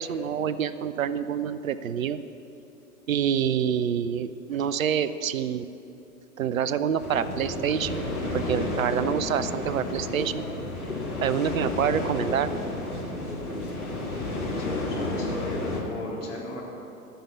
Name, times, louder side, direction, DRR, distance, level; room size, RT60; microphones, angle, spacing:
voice 1, 0.0-2.2 3.1-5.7 6.4-10.4 11.2-12.5, right 8 dB, 65° right, 14 dB, 0.7 m, -27 dB
sound 1, 7.0-15.8, left 2 dB, 75° left, 2.8 m, -31 dB
voice 2, 14.6-16.6, left 2 dB, 55° left, -3 dB, 3.7 m, -36 dB
14.0 x 6.9 x 8.4 m, 2.8 s
figure-of-eight pair, 95°, 44 cm